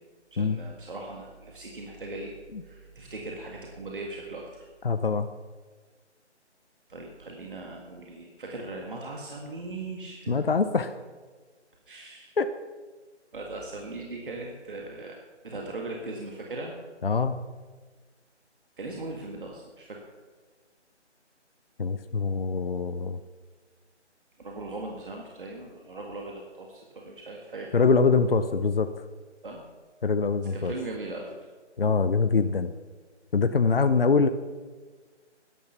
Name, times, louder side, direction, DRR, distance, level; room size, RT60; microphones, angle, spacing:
voice 1, 0.3-2.3 2.6-4.7 6.9-10.6 11.9-12.3 13.3-15.2 15.4-16.7 18.8-20.0 24.4-27.7 29.4-29.6 30.5-31.4, right 2 dB, 45° right, 0 dB, 1.9 m, -39 dB
voice 2, 4.8-5.3 10.3-10.9 12.4-12.5 17.0-17.5 21.8-23.2 27.7-28.9 30.0-30.7 31.8-32.7 33.3-34.3, left 4 dB, 55° left, 11 dB, 0.7 m, -24 dB
13.5 x 11.0 x 5.9 m, 1.4 s
figure-of-eight pair, 175°, 35 cm